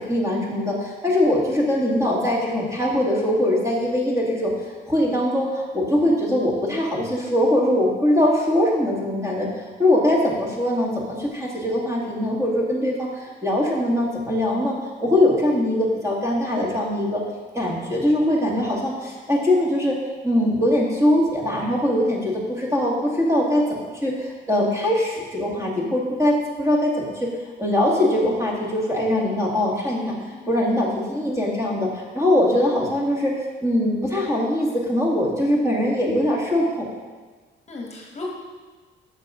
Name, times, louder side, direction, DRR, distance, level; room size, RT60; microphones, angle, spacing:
voice 1, 0.0-14.7 15.0-17.2 17.5-20.0 20.2-23.7 24.0-27.3 27.6-30.2 30.5-33.3 33.6-36.9, left 1 dB, 15° right, -3 dB, 2.1 m, -22 dB
voice 2, 30.3-31.4 37.7-38.3, left 3 dB, 35° left, -1 dB, 1.3 m, -37 dB
6.5 x 6.4 x 5.0 m, 1.4 s
cardioid pair, 90°, 20 cm